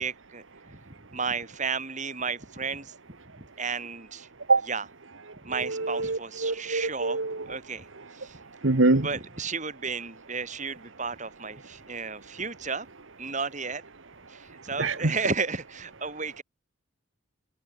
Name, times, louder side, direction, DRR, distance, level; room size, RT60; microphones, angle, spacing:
voice 1, 0.0-2.9 3.4-4.3 4.7-4.8 5.4-7.2 7.5-7.9 8.1-8.4 8.9-12.9 13.2-13.8 14.3-16.4, right 5 dB, 40° right, 6.7 m, -33 dB
voice 2, 5.5-7.6 8.6-9.1 14.8-15.1, right 3 dB, 75° right, 1.5 m, -25 dB
head